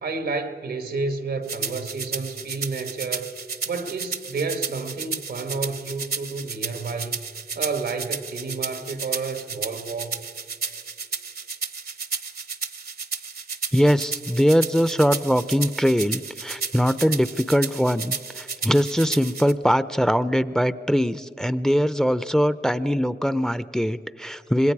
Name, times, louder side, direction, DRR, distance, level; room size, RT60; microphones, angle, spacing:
voice 1, 0.0-3.3 3.6-7.2 7.5-10.2, right 4 dB, 85° right, 8 dB, 1.6 m, -30 dB
sound 1, 1.5-19.5, right 5 dB, 65° right, 1.0 m, -33 dB
voice 2, 13.7-24.7, equal, 5° left, 15 dB, 0.6 m, -22 dB
26.0 x 21.0 x 4.8 m, 2.2 s
cardioid pair, 45°, 17 cm